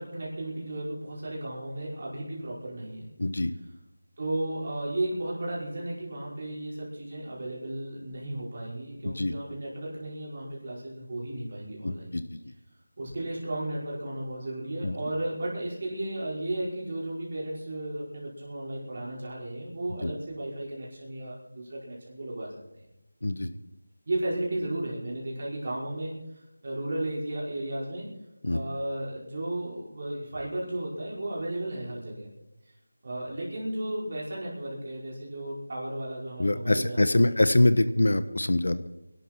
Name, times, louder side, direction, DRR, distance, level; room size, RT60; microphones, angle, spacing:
voice 1, 0.0-3.1 4.2-12.2 13.0-22.8 24.0-28.1 28.5-32.3 33.0-37.5, right 1 dB, 30° right, -5 dB, 5.0 m, -34 dB
voice 2, 3.2-3.5 9.0-9.3 11.8-12.4 14.8-15.0 20.0-20.1 23.2-23.5 28.4-28.6 36.4-38.9, left 2 dB, 65° left, 12 dB, 1.1 m, -24 dB
24.5 x 12.0 x 4.6 m, 0.92 s
figure-of-eight pair, 180°, 0 cm